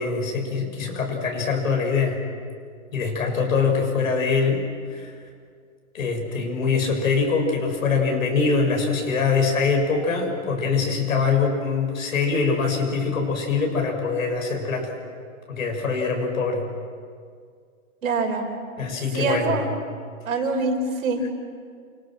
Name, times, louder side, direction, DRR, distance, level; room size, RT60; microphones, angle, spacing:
voice 1, 0.0-2.2 2.9-5.1 5.9-14.9 15.5-16.7 18.8-19.6 21.2-21.3, left 4 dB, 80° left, 1 dB, 7.1 m, -23 dB
voice 2, 18.0-18.5 19.1-19.7 20.3-21.2, right 3 dB, 80° right, 4 dB, 5.3 m, -24 dB
29.5 x 25.5 x 6.3 m, 2.1 s
hypercardioid pair, 140°, 40 cm